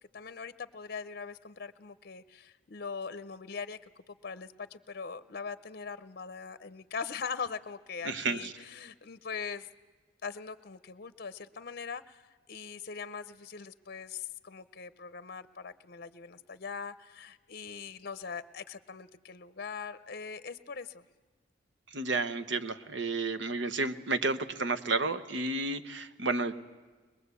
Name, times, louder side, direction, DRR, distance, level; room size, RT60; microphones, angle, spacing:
voice 1, 0.1-3.8 4.1-9.7 10.2-12.2 12.5-21.0, left 5 dB, 55° left, 15 dB, 0.7 m, -41 dB
voice 2, 8.0-8.5 21.9-26.5, right 3 dB, 70° right, 11 dB, 1.1 m, -31 dB
22.0 x 22.0 x 8.3 m, 1.3 s
head